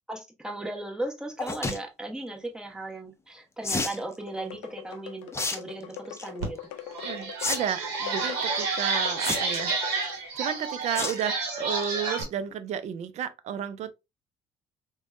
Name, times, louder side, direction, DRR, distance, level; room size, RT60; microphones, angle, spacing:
voice 1, 0.1-6.6, right 2 dB, 5° right, 1.0 m, -37 dB
sound 1, 1.4-1.8 3.6-4.0 5.3-5.6 5.9-6.3 7.4-7.6 7.9-8.0 9.2-9.7 11.0-11.2 11.6-11.8 12.2-12.3 12.5-12.6, left 3 dB, 20° left, 0.7 m, -29 dB
sound 2, 4.2-10.3, left 12 dB, 80° left, 0.4 m, -42 dB
sound 3, 6.4-6.5 6.9-12.2, right 4 dB, 75° right, 0.8 m, -30 dB
voice 2, 7.0-9.7 10.1-13.9, right 9 dB, 50° right, 0.4 m, -32 dB
3.3 x 2.2 x 2.4 m
hypercardioid pair, 55°, 15 cm